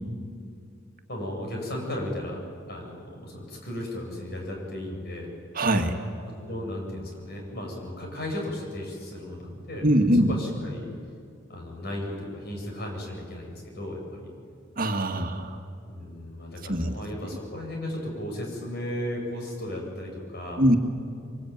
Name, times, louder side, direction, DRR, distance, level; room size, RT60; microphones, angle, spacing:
voice 1, 1.1-2.4 2.7-5.3 6.2-9.9 10.3-10.9 11.5-14.3 15.8-20.6, left 1 dB, 55° left, 0 dB, 7.8 m, -35 dB
voice 2, 5.5-6.0 9.8-10.3 14.8-15.6 16.7-16.9 20.6-20.8, equal, 45° right, 4 dB, 1.8 m, -22 dB
24.5 x 23.5 x 9.4 m, 2.4 s
head